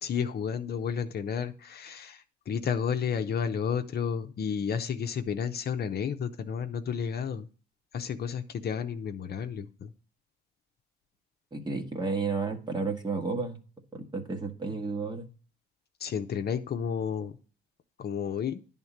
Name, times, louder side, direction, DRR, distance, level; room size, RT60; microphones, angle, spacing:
voice 1, 0.0-7.5 7.9-9.9 16.0-17.4 18.0-18.6, left 7 dB, 55° left, 7 dB, 0.8 m, -31 dB
voice 2, 11.5-13.6 13.9-15.3, right 4 dB, 20° right, 4 dB, 1.5 m, -32 dB
10.5 x 3.6 x 7.2 m, 0.39 s
cardioid pair, 90°, 20 cm